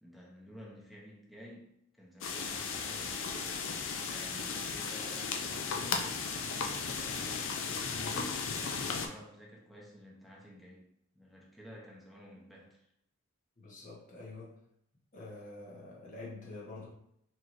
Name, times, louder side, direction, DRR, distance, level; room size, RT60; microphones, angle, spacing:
voice 1, 0.0-3.4 4.1-8.5 8.8-10.9 11.1-12.9, equal, ahead, -3 dB, 0.8 m, -52 dB
sound 1, 2.2-9.1, left 5 dB, 65° left, 0.5 m, -35 dB
voice 2, 13.6-14.6 15.1-16.9, left 2 dB, 40° left, -4 dB, 1.1 m, -47 dB
4.3 x 3.1 x 2.6 m, 0.73 s
head